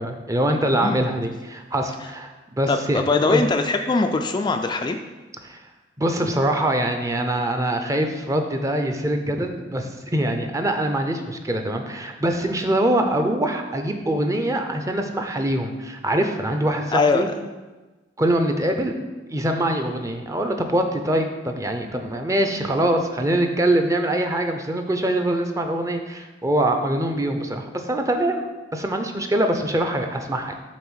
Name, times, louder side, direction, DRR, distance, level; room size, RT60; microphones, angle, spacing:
voice 1, 0.0-3.4 5.4-5.6 6.0-17.3 18.2-18.9 19.3-28.4 28.7-30.5, right 1 dB, 20° right, 5 dB, 0.6 m, -23 dB
voice 2, 2.7-5.0 16.9-17.2, left 3 dB, 25° left, 5 dB, 0.3 m, -21 dB
7.1 x 3.5 x 6.3 m, 1.2 s
head